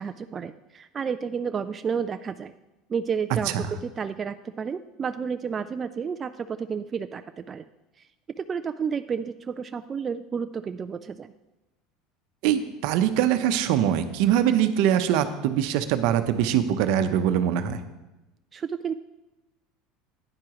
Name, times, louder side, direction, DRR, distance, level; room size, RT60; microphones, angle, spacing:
voice 1, 0.0-2.5 2.9-7.6 8.0-8.1 8.4-11.3 18.5-19.0, right 6 dB, 30° right, 9 dB, 0.3 m, -31 dB
voice 2, 3.3-3.7 12.4-17.8, right 10 dB, 70° right, 9 dB, 0.8 m, -23 dB
10.5 x 9.7 x 3.0 m, 1.0 s
supercardioid pair, 105°, 0 cm